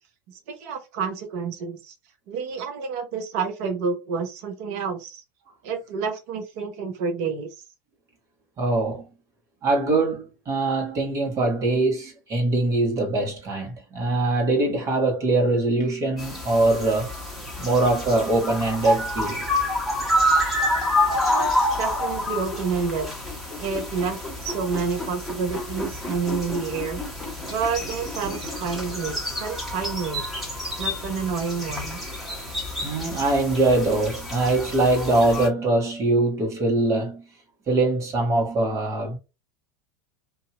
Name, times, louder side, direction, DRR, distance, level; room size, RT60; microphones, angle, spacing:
voice 1, 0.3-1.9 2.3-5.2 5.6-7.5 21.1-23.1 23.6-27.0 27.5-30.2 30.8-32.0, right 5 dB, 55° right, 0.8 m, -29 dB
voice 2, 8.6-9.0 9.6-17.1 17.6-19.5 32.8-37.2 37.7-39.2, right 2 dB, 30° right, 1.4 m, -22 dB
sound 1, 16.2-35.5, left 1 dB, ahead, 1.3 m, -28 dB
2.7 x 2.7 x 2.4 m
figure-of-eight pair, 80°, 10 cm